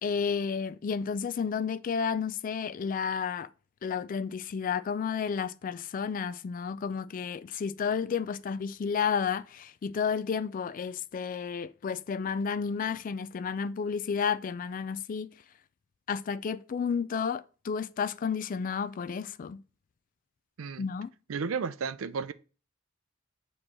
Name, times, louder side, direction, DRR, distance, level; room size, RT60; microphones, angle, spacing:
voice 1, 0.0-3.5 3.8-15.3 16.1-19.6 20.8-21.1, left 6 dB, 40° left, 0.3 m, -31 dB
voice 2, 21.3-22.3, right 5 dB, 85° right, 0.5 m, -33 dB
7.5 x 3.1 x 6.1 m
head